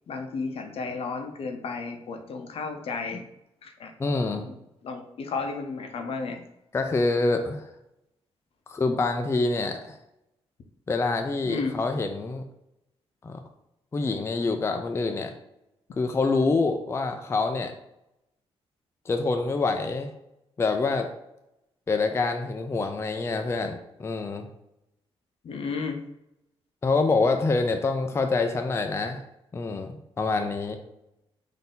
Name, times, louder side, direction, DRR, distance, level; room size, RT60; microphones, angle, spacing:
voice 1, 0.1-3.2 3.6-3.9 4.4-4.5 4.8-6.4 11.4-11.7 25.4-26.0, left 4 dB, 65° left, 5 dB, 0.6 m, -33 dB
voice 2, 4.0-4.5 6.7-7.7 8.7-10.0 10.9-12.4 13.2-13.4 13.9-15.3 16.0-17.7 19.1-20.1 20.6-21.1 21.9-24.5 26.8-29.2 29.5-30.8, left 3 dB, 25° left, 6 dB, 0.4 m, -26 dB
4.0 x 2.7 x 3.7 m, 0.84 s
cardioid pair, 90°, 11 cm